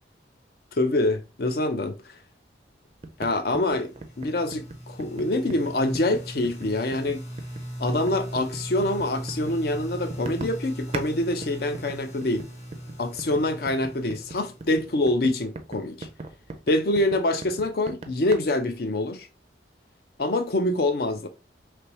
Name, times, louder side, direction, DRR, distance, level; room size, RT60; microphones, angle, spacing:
voice 1, 0.8-2.0 3.2-7.2 7.8-12.4 13.0-16.1 16.7-19.3 20.2-21.3, left 2 dB, 55° left, 0.5 m, -25 dB
sound 1, 3.0-11.1 11.4-18.4, right 3 dB, 35° right, 0.4 m, -39 dB
sound 2, 3.5-15.3, equal, 35° left, 1.1 m, -39 dB
3.3 x 3.0 x 2.8 m
head